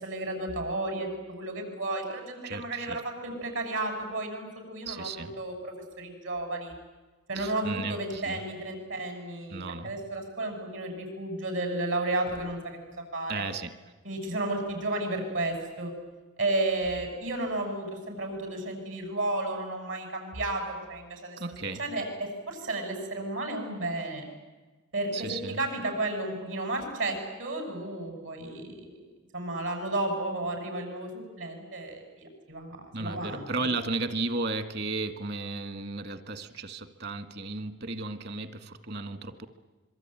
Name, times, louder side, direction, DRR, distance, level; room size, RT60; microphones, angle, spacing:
voice 1, 0.0-6.7 7.3-12.8 13.1-13.4 14.0-15.9 16.4-21.4 21.8-24.3 24.9-29.0 29.3-31.1 31.4-33.5, right 2 dB, 85° right, 5 dB, 7.4 m, -33 dB
voice 2, 2.5-3.0 4.9-5.4 7.4-8.4 9.5-10.0 13.3-13.7 21.4-21.8 25.1-25.6 32.9-39.5, right 3 dB, 55° right, 10 dB, 1.8 m, -34 dB
26.0 x 23.5 x 9.1 m, 1.2 s
head